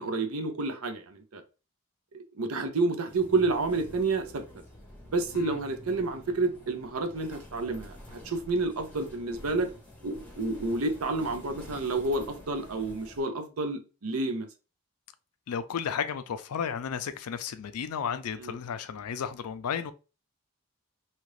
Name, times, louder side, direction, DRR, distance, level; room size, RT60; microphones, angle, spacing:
voice 1, 0.0-1.4 2.1-4.4 5.1-9.7 10.0-14.5 18.4-18.5, right 3 dB, 80° right, 0.6 m, -30 dB
sound 1, 3.1-13.2, left 1 dB, 5° left, 0.7 m, -48 dB
voice 2, 15.5-19.9, left 7 dB, 90° left, 0.4 m, -33 dB
2.8 x 2.5 x 3.2 m
head